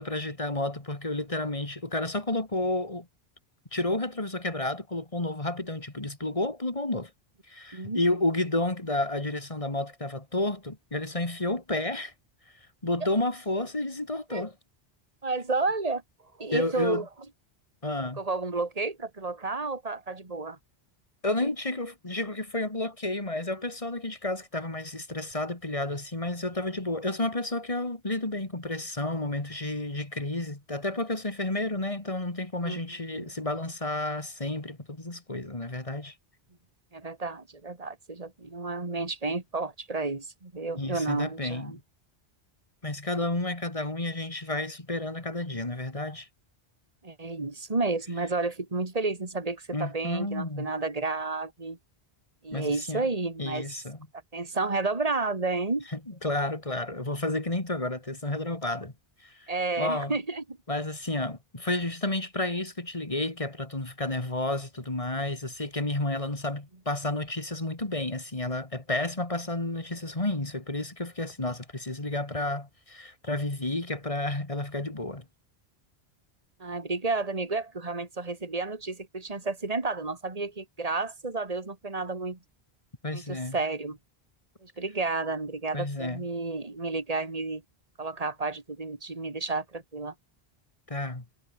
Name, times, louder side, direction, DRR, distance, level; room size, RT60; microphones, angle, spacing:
voice 1, 0.0-3.1 3.7-7.1 7.5-12.1 12.8-14.5 16.5-17.0 17.8-18.2 21.2-36.1 40.8-41.8 42.8-46.3 49.7-50.7 52.5-53.1 53.4-54.0 55.9-58.9 59.2-59.5 59.8-60.1 60.7-75.2 83.0-83.6 85.7-86.2 90.9-91.2, left 2 dB, 30° left, 2.7 m, -31 dB
voice 2, 15.2-16.0 16.4-17.1 18.2-20.6 32.6-32.8 33.1-33.3 36.9-41.8 47.0-51.8 52.4-53.7 54.3-55.9 59.5-60.4 76.6-82.4 83.1-84.0 84.6-87.6 88.0-90.1, right 3 dB, 35° right, 2.4 m, -31 dB
omnidirectional pair, 1.1 m